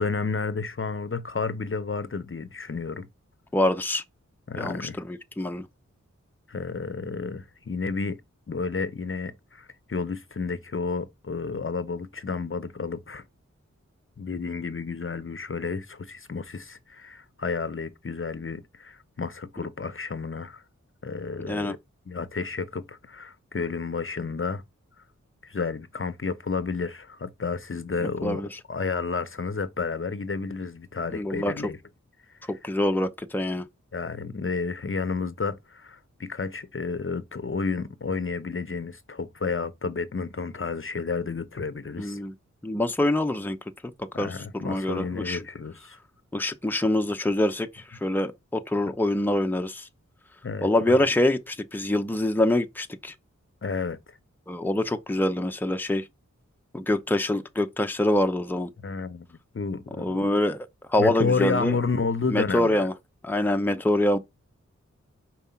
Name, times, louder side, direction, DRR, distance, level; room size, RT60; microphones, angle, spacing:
voice 1, 0.0-3.1 4.5-5.0 6.5-8.2 8.5-13.2 14.2-20.6 21.0-21.8 22.1-24.6 25.4-31.8 32.4-32.5 33.9-42.2 44.1-46.0 50.4-51.0 53.6-54.2 58.8-60.3 61.0-62.9, left 4 dB, 45° left, 0.7 m, -31 dB
voice 2, 3.5-4.0 4.6-5.6 21.4-21.7 28.2-28.5 31.1-31.5 32.5-33.6 42.0-42.3 42.6-43.6 44.2-45.4 46.3-49.9 50.6-53.1 54.5-56.0 56.7-58.7 60.0-61.7 62.3-62.9 63.2-64.2, left 1 dB, 5° left, 0.7 m, -25 dB
5.5 x 4.5 x 4.3 m
wide cardioid pair, 55°, 29 cm